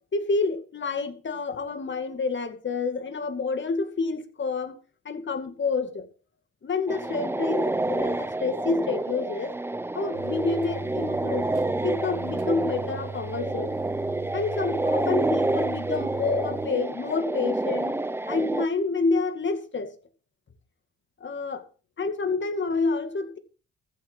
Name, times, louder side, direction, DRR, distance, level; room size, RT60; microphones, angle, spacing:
voice 1, 0.1-4.8 5.1-6.1 6.6-9.6 9.9-11.5 11.8-13.7 14.2-18.0 18.3-19.9 21.2-21.6 22.0-23.4, left 4 dB, 40° left, 2.2 m, -28 dB
sound 1, 6.9-18.7, right 2 dB, 10° right, 0.6 m, -28 dB
sound 2, 10.1-16.7, right 6 dB, 80° right, 1.7 m, -39 dB
14.5 x 6.9 x 6.2 m
cardioid pair, 90°, 30 cm